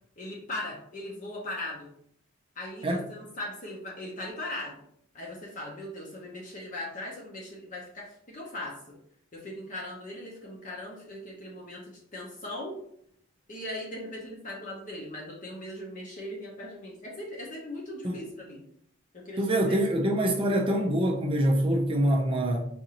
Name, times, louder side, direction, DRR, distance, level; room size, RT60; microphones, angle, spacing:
voice 1, 0.2-1.9 2.6-4.8 5.1-9.0 9.3-12.8 13.5-18.6 19.1-19.8, left 1 dB, 35° left, -4 dB, 0.7 m, -39 dB
voice 2, 19.4-22.6, right 1 dB, 25° right, 0 dB, 0.4 m, -25 dB
4.9 x 2.5 x 2.8 m, 0.68 s
head